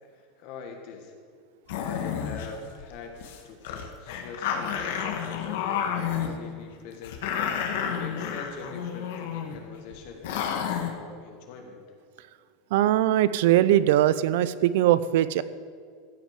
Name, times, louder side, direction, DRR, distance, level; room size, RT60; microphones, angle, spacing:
voice 1, 0.0-1.1 1.7-3.2 3.4-7.2 7.7-11.8, left 4 dB, 45° left, 3 dB, 1.5 m, -43 dB
sound 1, 1.7-2.5 2.8-2.9 3.2-3.4 3.6-6.3 7.0-9.6 9.9-10.0 10.2-10.9, left 8 dB, 65° left, 1.4 m, -30 dB
voice 2, 12.7-15.4, right 12 dB, 60° right, 16 dB, 0.5 m, -21 dB
15.0 x 6.1 x 8.0 m, 2.1 s
supercardioid pair, 180°, 0 cm